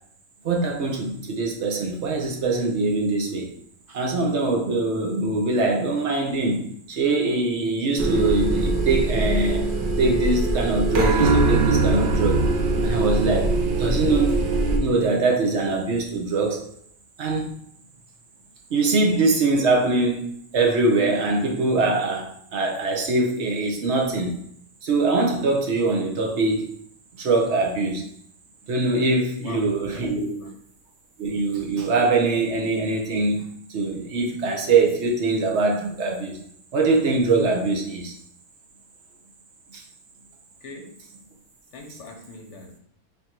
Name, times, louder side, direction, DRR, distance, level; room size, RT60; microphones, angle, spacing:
voice 1, 0.4-3.5 3.9-9.7 10.0-12.4 12.8-13.5 13.8-14.4 14.8-16.6 17.2-17.5 18.7-20.3 20.5-24.3 24.8-26.7 27.2-28.0 28.7-30.4 31.2-33.4 33.7-36.3 36.7-38.1 39.7-39.8, right 3 dB, 55° right, 1 dB, 0.9 m, -23 dB
sound 1, 8.0-14.8, right 2 dB, 80° right, 0.4 m, -22 dB
voice 2, 29.9-30.5 40.6-40.9 41.7-42.8, left 3 dB, 55° left, 3 dB, 1.0 m, -42 dB
3.6 x 2.6 x 4.3 m, 0.68 s
omnidirectional pair, 1.6 m